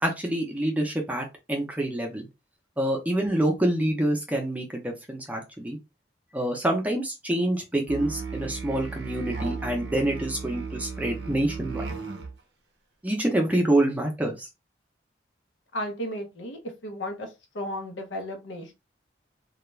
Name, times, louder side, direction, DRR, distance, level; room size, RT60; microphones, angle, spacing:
voice 1, 0.0-2.3 2.8-5.8 6.3-11.9 13.0-14.5, right 1 dB, 10° right, 0.5 m, -26 dB
Musical instrument, 7.9-12.4, right 4 dB, 60° right, 0.5 m, -35 dB
voice 2, 15.7-17.3 17.5-18.7, equal, 75° left, 0.7 m, -34 dB
2.3 x 2.2 x 3.0 m
head